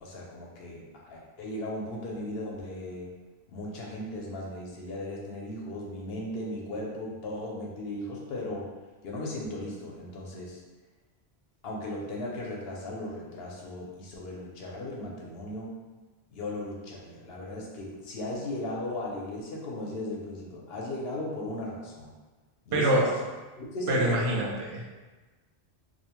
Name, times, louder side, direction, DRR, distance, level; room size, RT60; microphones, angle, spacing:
voice 1, 0.0-3.1 3.5-8.7 9.0-10.6 11.6-15.7 16.3-22.1 22.7-23.1 23.6-24.5, left 1 dB, 70° left, -2 dB, 0.8 m, -36 dB
voice 2, 22.7-23.1 23.9-24.8, right 1 dB, 80° right, -2 dB, 0.8 m, -25 dB
2.6 x 2.0 x 2.8 m, 1.2 s
omnidirectional pair, 1.1 m